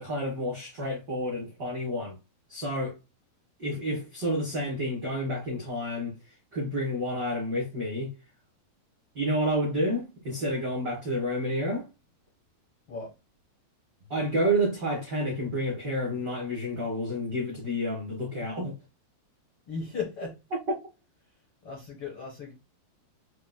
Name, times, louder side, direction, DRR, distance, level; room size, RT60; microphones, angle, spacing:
voice 1, 0.0-2.2 2.5-2.9 3.6-6.1 6.5-8.1 9.1-11.9 14.1-18.8, equal, 70° right, 1.0 m, -29 dB
voice 2, 19.7-20.3 21.6-22.5, left 5 dB, 50° left, 1.7 m, -36 dB
7.2 x 2.5 x 2.2 m
omnidirectional pair, 4.5 m